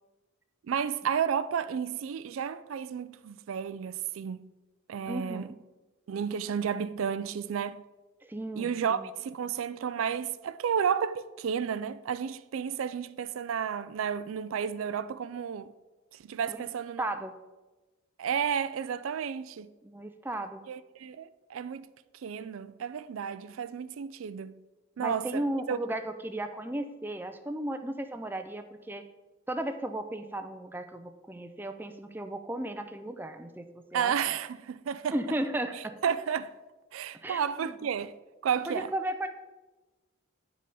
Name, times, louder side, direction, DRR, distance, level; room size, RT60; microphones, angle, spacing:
voice 1, 0.7-4.5 4.9-5.5 6.1-7.8 8.6-15.7 16.2-17.0 18.2-19.7 20.7-21.9 22.2-24.5 25.0-25.8 33.9-35.2 35.7-36.5 36.9-38.1 38.4-38.9, right 7 dB, 75° right, 0.4 m, -32 dB
voice 2, 5.1-5.5 8.2-9.1 16.5-16.6 17.0-17.4 19.8-20.6 25.0-29.0 29.5-34.3 35.1-35.9 37.2-37.7 38.7-39.3, right 1 dB, 10° right, 0.4 m, -35 dB
9.1 x 5.2 x 5.5 m
head